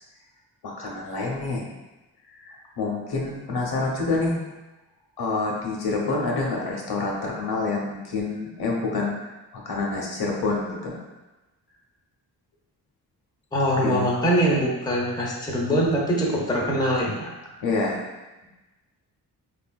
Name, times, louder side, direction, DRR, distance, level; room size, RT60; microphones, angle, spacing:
voice 1, 0.6-1.7 2.4-4.4 5.2-9.2 9.5-11.0 13.8-14.0 17.6-18.0, left 3 dB, 60° left, -2 dB, 0.7 m, -27 dB
voice 2, 13.5-17.3, equal, 10° left, -3 dB, 0.7 m, -23 dB
3.3 x 2.3 x 2.2 m, 1.1 s
cardioid pair, 65°, 42 cm